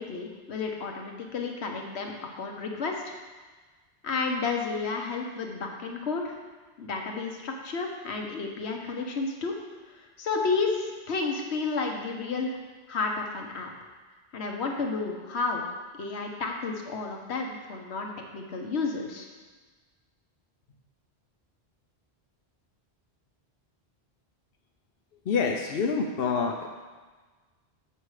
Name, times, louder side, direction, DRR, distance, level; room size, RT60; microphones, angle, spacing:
voice 1, 0.0-2.1 2.4-3.1 4.0-6.4 6.8-9.5 10.2-12.6 12.9-13.7 14.3-15.6 15.9-19.3, left 4 dB, 80° left, 2 dB, 1.3 m, -31 dB
voice 2, 25.2-26.9, left 5 dB, 65° left, 2 dB, 0.9 m, -27 dB
7.0 x 6.9 x 4.8 m, 1.3 s
omnidirectional pair, 1.1 m